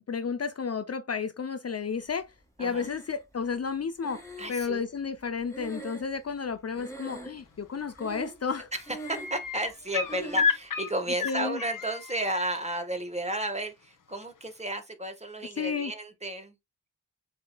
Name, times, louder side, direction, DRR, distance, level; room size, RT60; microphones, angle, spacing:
voice 1, 0.1-2.3 2.6-8.7 10.2-10.3 11.2-11.6 15.6-15.9, left 5 dB, 45° left, 0.5 m, -32 dB
Breathing, 2.7-3.4 4.0-6.5 6.7-7.6 7.9-8.5 8.8-9.5 10.1-10.6, right 2 dB, 10° left, 1.6 m, -43 dB
voice 2, 4.4-4.8 8.7-16.5, right 1 dB, 20° right, 1.4 m, -33 dB
sound 1, 7.9-8.2 8.5-12.6 14.2-14.3, left 6 dB, 65° left, 1.0 m, -32 dB
7.8 x 2.8 x 2.3 m
cardioid pair, 50°, 35 cm